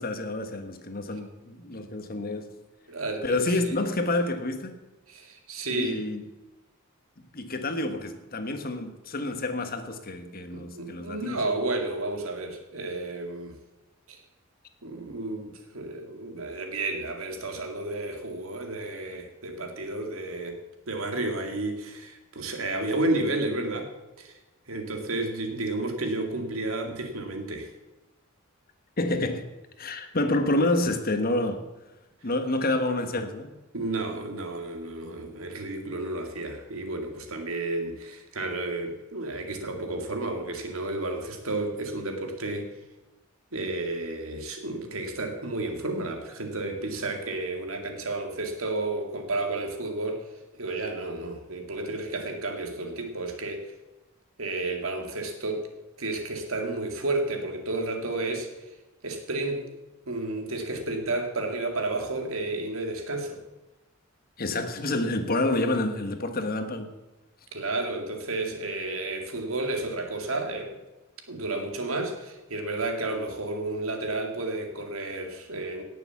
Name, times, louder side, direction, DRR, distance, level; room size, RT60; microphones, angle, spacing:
voice 1, 0.0-2.5 3.2-4.8 5.7-6.3 7.2-11.4 29.0-29.5 29.8-31.6 32.2-33.5 64.4-67.0, left 2 dB, 45° left, 7 dB, 1.5 m, -28 dB
voice 2, 2.9-3.8 5.1-6.1 10.5-13.6 14.1-14.2 14.8-20.6 20.9-23.9 24.2-24.3 24.7-27.7 33.7-42.7 43.5-50.3 50.5-53.7 54.4-55.7 56.0-58.5 59.0-59.7 60.1-63.4 67.5-70.7 71.3-75.8, right 2 dB, 90° right, 4 dB, 2.3 m, -31 dB
17.5 x 6.9 x 7.2 m, 1.1 s
head